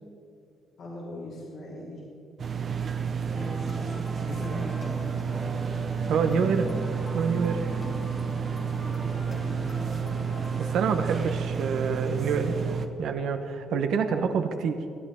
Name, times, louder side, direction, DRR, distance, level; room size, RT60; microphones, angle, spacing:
voice 1, 0.8-2.0 4.2-5.6 7.7-7.9 8.3-9.3, left 1 dB, 70° left, -5 dB, 3.5 m, -41 dB
sound 1, 2.4-12.9, right 6 dB, 50° right, 1.0 m, -30 dB
sound 2, 3.3-10.7, left 1 dB, 25° left, 1.8 m, -40 dB
voice 2, 6.1-6.7 7.1-7.6 10.6-12.6 13.0-14.8, right 6 dB, 75° right, 6 dB, 1.1 m, -27 dB
23.0 x 9.5 x 3.8 m, 2.5 s
cardioid pair, 90°, 0 cm